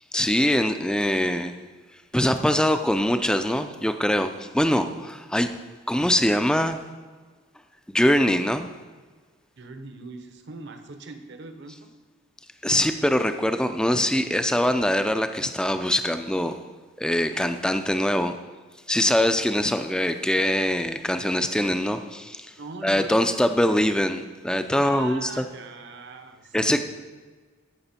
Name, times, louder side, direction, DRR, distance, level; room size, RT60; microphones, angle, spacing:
voice 1, 0.1-1.5 2.1-5.5 5.9-6.8 7.9-8.7 12.6-16.6 17.0-18.3 18.9-22.5 22.8-25.4 26.5-26.8, left 1 dB, 5° left, 8 dB, 0.4 m, -23 dB
voice 2, 9.6-11.9 22.6-23.7 24.7-26.8, right 3 dB, 55° right, 7 dB, 0.9 m, -41 dB
15.0 x 6.0 x 4.3 m, 1.4 s
head